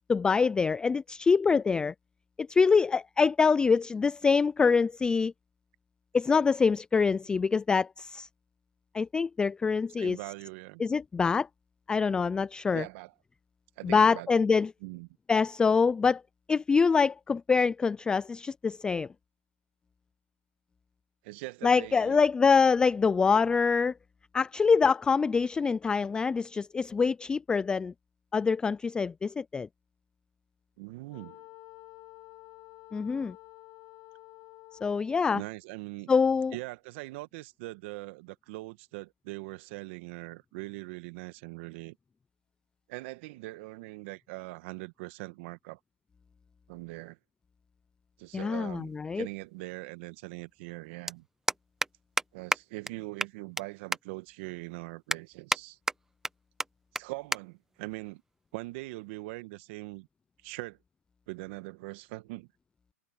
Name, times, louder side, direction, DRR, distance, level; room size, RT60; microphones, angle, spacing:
voice 1, 0.1-1.9 2.4-5.3 6.1-8.3 8.9-10.2 10.8-11.5 11.9-12.8 13.8-14.7 15.3-16.2 16.5-19.1 21.6-23.9 24.3-27.9 28.3-29.7 32.9-33.4 34.8-35.4 36.1-36.5 48.3-49.2, left 5 dB, 10° left, 0.4 m, -25 dB
voice 2, 10.0-10.8 12.7-13.1 13.8-14.3 14.8-15.1 21.2-22.2 30.8-31.5 35.3-36.1 36.5-42.0 42.9-45.8 46.7-47.2 48.2-51.2 52.3-55.8 56.9-58.2 58.5-60.1 60.4-60.8 61.3-62.5, right 22 dB, 50° right, 1.5 m, -41 dB
Wind instrument woodwind instrument, 31.1-35.3, left 22 dB, 40° left, 7.5 m, -51 dB
sound 1, 48.8-48.9 50.3-50.4 50.6-50.8 51.1-51.2 51.5-51.9 52.2-52.3 52.5-52.6 52.9-53.0 53.2-53.6 53.9-54.0 54.5-54.6 55.1-55.6 55.9-56.3 56.6-56.7 56.9-57.0 57.3-57.4 57.7-58.0 58.7-59.0, right 2 dB, 5° right, 0.9 m, -29 dB
hypercardioid pair, 135°, 8 cm